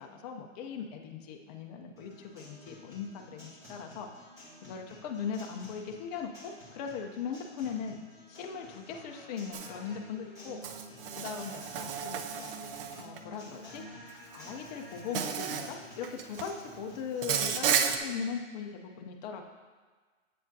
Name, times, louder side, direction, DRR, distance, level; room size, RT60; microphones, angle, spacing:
voice 1, 0.0-4.1 4.6-8.0 8.3-10.6 11.2-12.4 13.0-19.4, left 6 dB, 35° left, 2 dB, 0.6 m, -39 dB
Guitar, 2.0-18.0, equal, 10° right, 1.7 m, -50 dB
Insect, 9.5-9.7 10.6-13.2 14.3-14.5 15.1-15.7 16.0-16.5 17.2-18.0, right 8 dB, 45° right, 0.5 m, -32 dB
7.6 x 7.5 x 2.7 m, 1.4 s
hypercardioid pair, 145°, 39 cm